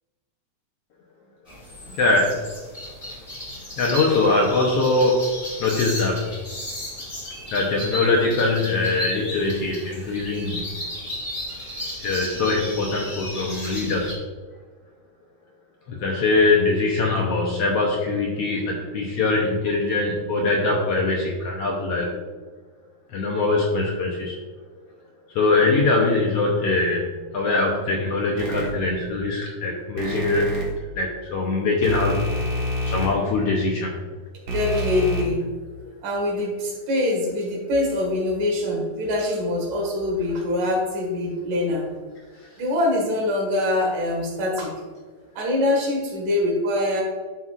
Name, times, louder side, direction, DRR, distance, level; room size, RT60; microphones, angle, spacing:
sound 1, 1.5-14.1, left 1 dB, 20° left, 1.1 m, -34 dB
voice 1, 2.0-2.3 3.8-5.2 5.6-6.3 7.5-10.6 12.0-14.2 15.9-22.2 23.1-24.4 25.3-27.1 27.3-30.5 30.9-32.2 32.8-33.9, left 3 dB, 70° left, -1 dB, 1.5 m, -22 dB
sound 2, 28.4-28.6 30.0-30.6 31.8-33.1 34.5-35.2, left 1 dB, 50° right, 2.1 m, -27 dB
voice 2, 34.5-35.5 36.0-41.9 42.6-44.7 45.4-47.0, left 1 dB, 85° right, -1 dB, 3.5 m, -24 dB
11.0 x 6.0 x 2.5 m, 1.4 s
omnidirectional pair, 3.6 m